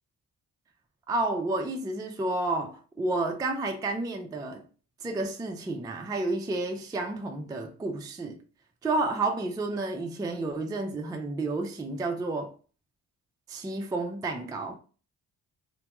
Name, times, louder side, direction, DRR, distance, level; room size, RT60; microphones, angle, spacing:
voice 1, 1.1-4.6 5.0-8.4 8.8-12.5 13.5-14.7, right 2 dB, 10° right, 0.3 m, -31 dB
2.2 x 2.1 x 2.9 m
supercardioid pair, 50°, 44 cm